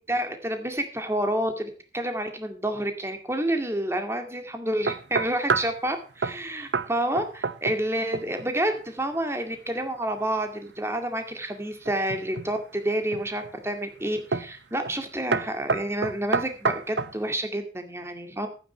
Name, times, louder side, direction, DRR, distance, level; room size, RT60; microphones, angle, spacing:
voice 1, 0.1-18.5, right 1 dB, 15° right, 6 dB, 2.1 m, -29 dB
sound 1, 4.9-5.8 6.2-6.4 6.7-6.9 7.2-7.9 8.1-8.5 11.9-12.5 13.1-13.5 14.3-14.6 14.8-15.0 15.3-17.2, right 4 dB, 85° right, 0.8 m, -28 dB
11.5 x 9.5 x 5.7 m, 0.37 s
head